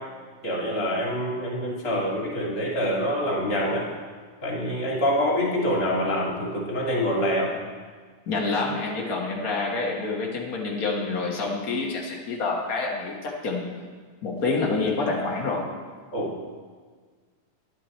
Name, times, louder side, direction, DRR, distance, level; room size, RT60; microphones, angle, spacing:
voice 1, 0.4-3.9 4.4-7.5 16.1-16.3, equal, 30° left, -3 dB, 2.2 m, -26 dB
voice 2, 8.3-13.9 14.2-15.7, left 3 dB, 75° left, -2 dB, 0.8 m, -27 dB
11.0 x 11.0 x 4.3 m, 1.5 s
omnidirectional pair, 3.6 m